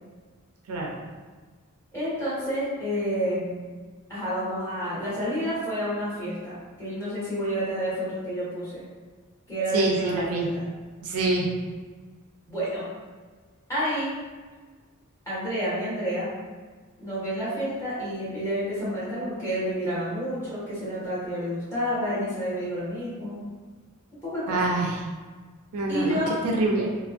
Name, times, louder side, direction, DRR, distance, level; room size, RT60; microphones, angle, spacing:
voice 1, 1.9-3.6 4.1-8.8 9.5-10.7 12.5-12.8 13.7-14.1 15.2-16.3 17.0-23.4 24.2-24.7 25.9-26.3, equal, 10° left, -11 dB, 1.4 m, -29 dB
voice 2, 9.7-10.5 11.0-11.5 24.5-25.0 25.7-26.9, right 2 dB, 75° right, -1 dB, 0.5 m, -25 dB
3.4 x 2.0 x 2.4 m, 1.4 s
head